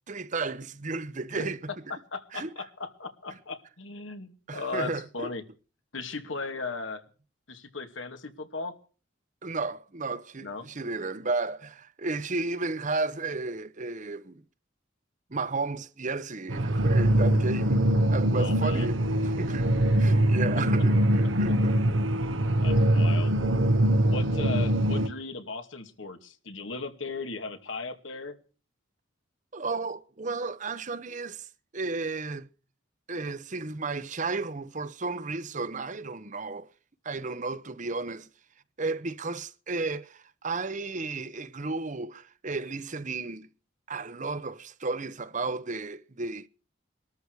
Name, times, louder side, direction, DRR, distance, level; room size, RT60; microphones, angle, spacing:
voice 1, 0.1-1.7 2.3-2.5 4.5-5.3 9.4-14.4 15.3-21.8 29.5-31.5 31.7-32.5 33.1-36.7 37.0-38.3 38.8-43.5 43.9-46.5, right 3 dB, 40° right, 0.9 m, -33 dB
voice 2, 2.1-5.4 5.9-7.0 7.5-8.7 10.4-10.7 18.3-18.9 22.2-23.3 24.1-28.4, left 3 dB, 85° left, 2.5 m, -37 dB
sound 1, 16.5-25.1, right 1 dB, 85° right, 1.2 m, -23 dB
22.5 x 13.5 x 4.8 m
head